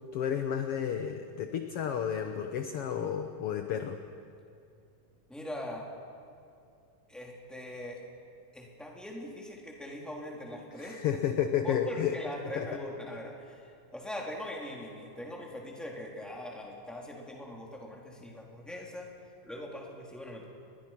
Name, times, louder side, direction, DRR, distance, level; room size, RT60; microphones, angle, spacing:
voice 1, 0.0-4.0 10.8-12.2 12.6-12.7, left 9 dB, 65° left, 7 dB, 1.5 m, -31 dB
voice 2, 5.3-5.9 7.1-8.0 8.5-11.0 11.6-19.1 19.4-20.5, left 1 dB, ahead, -1 dB, 3.2 m, -41 dB
29.0 x 22.0 x 6.0 m, 2.5 s
omnidirectional pair, 3.7 m